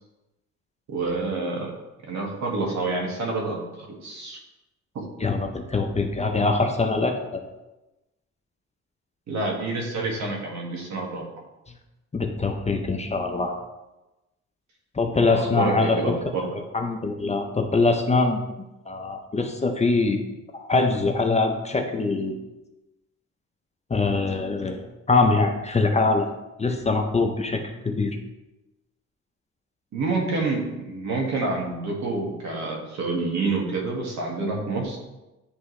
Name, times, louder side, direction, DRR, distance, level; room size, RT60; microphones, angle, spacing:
voice 1, 0.9-1.7 2.1-4.4 9.3-11.2 15.1-16.5 29.9-35.0, right 3 dB, 65° right, -1 dB, 1.8 m, -28 dB
voice 2, 5.2-7.4 12.1-13.6 14.9-16.2 16.7-18.4 18.9-20.2 20.5-22.4 23.9-26.3 26.6-28.2, left 3 dB, 20° left, 4 dB, 0.6 m, -23 dB
9.8 x 3.5 x 3.2 m, 1.0 s
cardioid pair, 90°, 30 cm